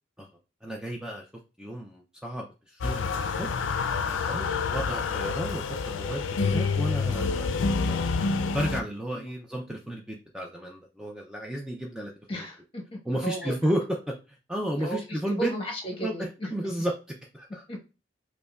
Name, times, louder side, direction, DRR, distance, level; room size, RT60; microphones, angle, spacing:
voice 1, 0.6-1.3 1.6-3.5 4.3-7.9 8.5-12.4 13.1-15.5 16.0-16.9 17.3-17.6, right 1 dB, 5° right, 0 dB, 0.4 m, -33 dB
sound 1, 2.8-8.8, left 4 dB, 85° left, 0.4 m, -28 dB
voice 2, 12.3-13.5 14.8-16.5 17.7-17.8, right 1 dB, 30° left, 1 dB, 1.1 m, -35 dB
5.2 x 2.1 x 2.3 m, 0.32 s
head